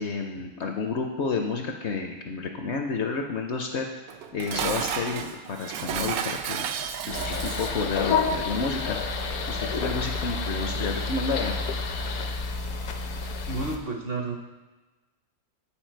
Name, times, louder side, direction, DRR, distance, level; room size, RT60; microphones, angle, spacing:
voice 1, 0.0-3.9 4.3-6.7 7.1-9.0 9.5-11.6, left 4 dB, 60° left, 3 dB, 0.7 m, -30 dB
Dishes pots and pans, 4.1-7.9, right 8 dB, 80° right, 1.1 m, -32 dB
sound 1, 7.1-13.8, left 4 dB, 80° left, 1.2 m, -29 dB
voice 2, 13.5-14.4, right 3 dB, 55° right, 1 dB, 0.7 m, -31 dB
9.0 x 4.6 x 4.5 m, 1.2 s
omnidirectional pair, 1.6 m